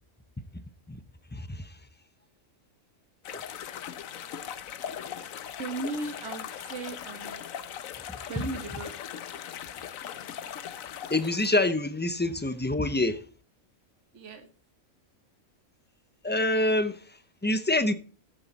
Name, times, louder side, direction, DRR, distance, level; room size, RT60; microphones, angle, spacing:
voice 1, 1.3-1.7 3.3-3.4 11.1-13.2 16.2-17.9, left 2 dB, 10° left, 0.5 m, -26 dB
sound 1, 3.2-11.7, left 9 dB, 80° left, 1.2 m, -39 dB
voice 2, 5.6-7.4 8.3-9.0 14.1-14.5, right 3 dB, 60° right, 1.7 m, -36 dB
15.0 x 8.6 x 4.1 m
omnidirectional pair, 1.4 m